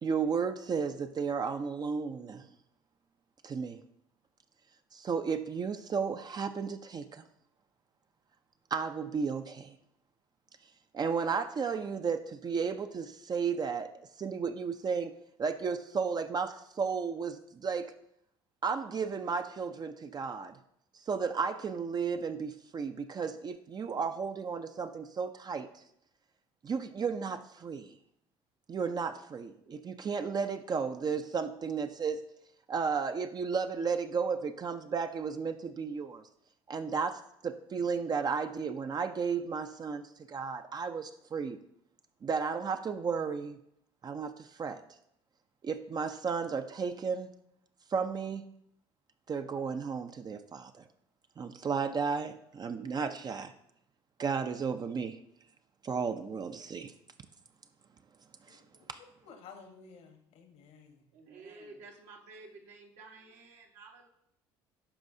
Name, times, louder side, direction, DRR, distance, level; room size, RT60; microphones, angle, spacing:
voice 1, 0.0-2.4 3.4-3.8 4.9-7.2 8.7-9.8 10.9-13.9 14.2-15.1 15.4-17.9 18.6-20.6 21.1-25.8 26.6-27.9 28.7-32.2 32.7-36.2 36.7-41.6 42.2-43.6 44.0-44.8 45.6-47.3 47.9-48.4 49.3-50.8 51.4-53.5 54.2-55.2 55.8-56.9 58.5-58.6 58.9-59.0, right 5 dB, 35° right, 8 dB, 0.5 m, -33 dB
voice 2, 58.5-61.0, left 5 dB, 65° left, 6 dB, 1.1 m, -54 dB
voice 3, 61.1-64.1, right 3 dB, 70° right, 1 dB, 1.3 m, -52 dB
11.5 x 4.7 x 2.7 m, 0.77 s
supercardioid pair, 70°, 12 cm